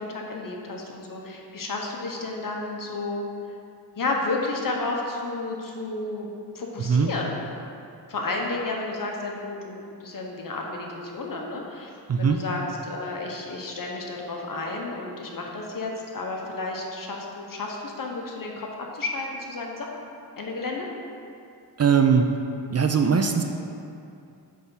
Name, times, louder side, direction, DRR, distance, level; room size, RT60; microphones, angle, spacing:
voice 1, 0.0-3.3 4.0-7.4 8.1-11.9 12.2-18.7 18.9-19.9 20.4-20.9, left 3 dB, 55° left, 0 dB, 1.1 m, -32 dB
voice 2, 12.1-12.4 21.8-22.4 22.7-23.4, right 6 dB, 40° right, 5 dB, 0.4 m, -20 dB
8.0 x 3.5 x 5.7 m, 2.6 s
wide cardioid pair, 100°, 41 cm